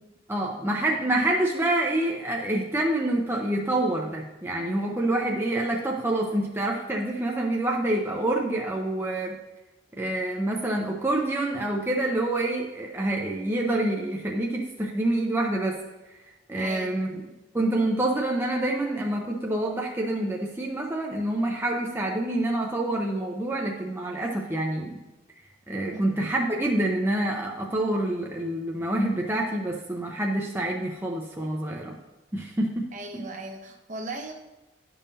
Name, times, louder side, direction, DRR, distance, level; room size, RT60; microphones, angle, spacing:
voice 1, 0.3-9.4 10.0-15.8 16.5-17.2 17.5-25.0 25.7-32.0 32.3-32.9 33.1-33.2, right 1 dB, 15° right, -1 dB, 0.6 m, -27 dB
voice 2, 16.6-17.0 25.9-26.0 32.9-34.3, right 2 dB, 45° right, 4 dB, 0.9 m, -37 dB
10.5 x 5.5 x 2.8 m, 1.1 s
head